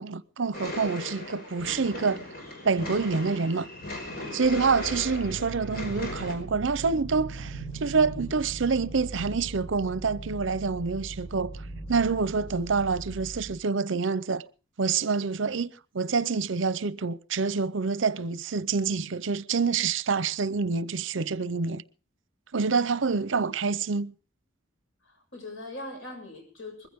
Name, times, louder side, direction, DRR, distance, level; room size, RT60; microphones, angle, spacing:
voice 1, 0.0-2.2 2.6-3.7 4.3-11.5 11.9-14.4 14.8-21.8 22.5-24.1, right 4 dB, 65° right, 0.7 m, -27 dB
sound 1, 0.5-6.4, left 1 dB, 50° left, 5.4 m, -38 dB
sound 2, 4.4-13.5, right 2 dB, 30° left, 6.9 m, -40 dB
voice 2, 25.0-26.9, left 2 dB, 85° left, 6.9 m, -41 dB
21.5 x 15.0 x 3.6 m
head